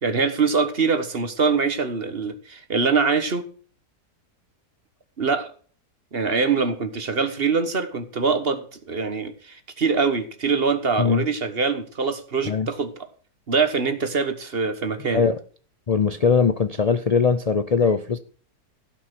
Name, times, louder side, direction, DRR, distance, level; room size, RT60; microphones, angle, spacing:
voice 1, 0.0-3.5 5.2-5.5 6.1-13.1 13.5-15.2, right 4 dB, 40° right, 10 dB, 1.5 m, -23 dB
voice 2, 15.9-18.2, left 5 dB, 70° left, 11 dB, 0.3 m, -20 dB
16.5 x 5.9 x 6.0 m, 0.43 s
omnidirectional pair, 1.7 m